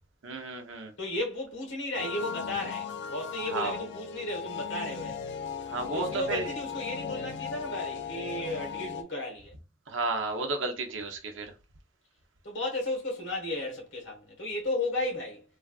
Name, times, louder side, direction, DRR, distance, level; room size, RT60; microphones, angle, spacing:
voice 1, 0.2-0.9 3.5-3.7 5.7-6.5 9.9-11.5, right 3 dB, 80° right, 0.7 m, -32 dB
voice 2, 1.0-5.4 5.9-9.5 12.4-15.4, left 1 dB, 75° left, 1.3 m, -34 dB
sound 1, 1.9-9.0, left 6 dB, 60° left, 0.3 m, -37 dB
3.3 x 2.4 x 2.3 m
head